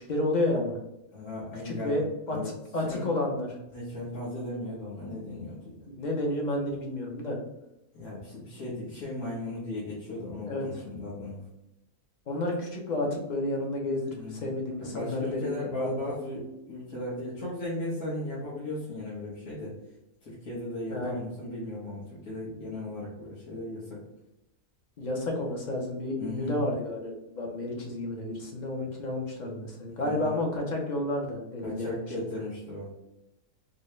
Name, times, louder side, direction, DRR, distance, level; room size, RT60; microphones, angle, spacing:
voice 1, 0.1-0.8 1.6-2.4 2.7-3.6 5.9-7.4 10.5-10.8 12.3-15.5 15.8-16.1 20.9-21.2 25.0-31.9, left 1 dB, 45° left, 0 dB, 0.6 m, -31 dB
voice 2, 1.1-2.0 2.3-2.5 2.8-3.0 3.7-5.8 7.9-11.4 14.1-14.5 14.8-19.8 20.2-24.0 26.2-26.6 30.0-30.4 31.6-32.9, left 1 dB, 85° left, -10 dB, 1.7 m, -36 dB
4.2 x 2.2 x 3.1 m, 0.90 s
omnidirectional pair, 1.5 m